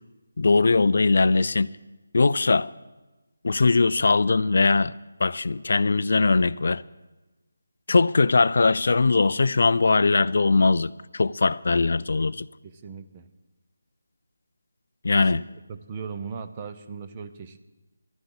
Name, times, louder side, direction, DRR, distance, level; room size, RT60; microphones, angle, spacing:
voice 1, 0.4-1.7 2.1-2.7 3.4-4.9 5.2-6.8 7.9-12.5 15.0-15.4, left 3 dB, 60° left, 0.4 m, -20 dB
voice 2, 12.6-13.2 15.1-17.6, right 5 dB, 20° right, 0.6 m, -38 dB
12.0 x 7.8 x 8.7 m
figure-of-eight pair, 170°, 0 cm